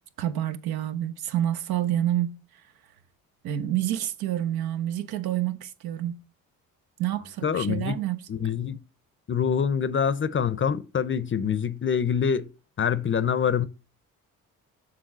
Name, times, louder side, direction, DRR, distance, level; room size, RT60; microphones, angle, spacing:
voice 1, 0.2-2.3 3.4-6.2 7.0-8.2, right 12 dB, 80° right, 0.8 m, -28 dB
voice 2, 7.4-8.0 8.3-8.8 9.3-12.5 12.8-13.7, left 7 dB, 35° left, 0.6 m, -25 dB
6.8 x 3.6 x 6.0 m
cardioid pair, 75°, 36 cm